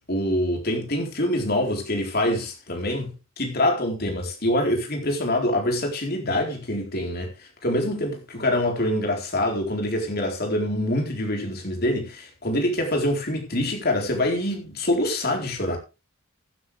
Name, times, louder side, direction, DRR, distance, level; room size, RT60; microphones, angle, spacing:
voice 1, 0.0-15.8, left 1 dB, 45° left, 4.3 m, -25 dB
15.5 x 10.0 x 3.5 m
head